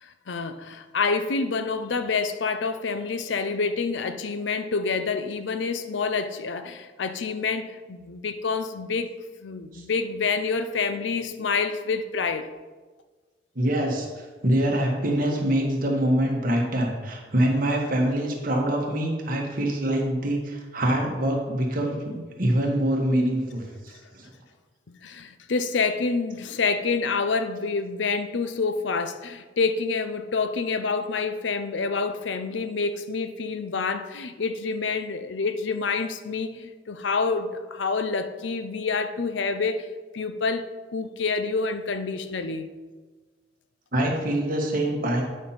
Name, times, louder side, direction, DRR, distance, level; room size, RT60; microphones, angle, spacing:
voice 1, 0.0-12.5 24.9-39.9 40.1-42.7, left 4 dB, 80° left, 0.6 m, -27 dB
voice 2, 13.5-24.3 43.9-45.2, right 1 dB, 50° right, 1.6 m, -25 dB
9.3 x 5.5 x 4.3 m
head